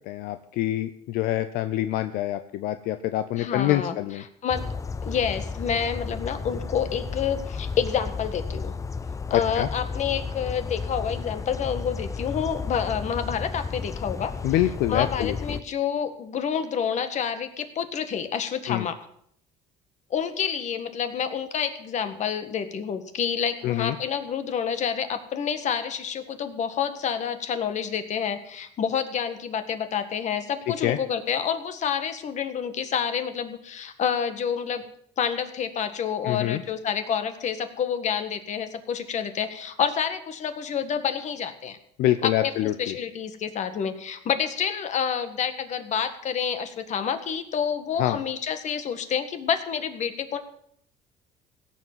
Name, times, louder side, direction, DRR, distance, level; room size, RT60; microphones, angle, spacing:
voice 1, 0.1-4.2 9.3-9.7 14.4-15.6 18.7-18.9 23.6-24.0 30.8-31.0 36.2-36.6 42.0-43.0 48.0-48.2, left 14 dB, 80° left, 11 dB, 0.7 m, -26 dB
voice 2, 3.3-4.0 4.4-4.7 5.0-8.7 9.3-14.3 14.9-19.0 20.1-34.8 35.2-41.8 42.2-42.5 42.8-50.4, left 7 dB, 50° left, 9 dB, 1.7 m, -28 dB
sound 1, 4.5-15.6, left 4 dB, 20° left, 0.6 m, -33 dB
16.5 x 7.4 x 7.9 m, 0.68 s
cardioid pair, 105°, 15 cm